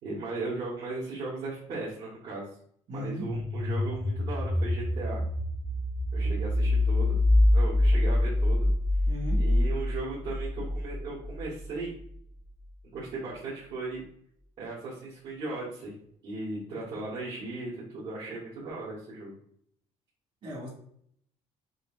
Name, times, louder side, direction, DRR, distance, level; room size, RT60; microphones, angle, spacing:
voice 1, 0.0-2.5 2.9-5.2 6.1-7.2 7.5-8.7 9.4-11.9 12.8-14.0 14.6-15.9 16.2-19.3, right 2 dB, 75° right, -7 dB, 1.8 m, -37 dB
voice 2, 2.9-3.3 9.1-9.4 20.4-20.7, equal, 60° right, -5 dB, 1.9 m, -36 dB
sound 1, 3.1-11.8, left 1 dB, 5° left, 0.5 m, -26 dB
6.4 x 2.9 x 2.6 m, 0.66 s
cardioid pair, 140°, 12 cm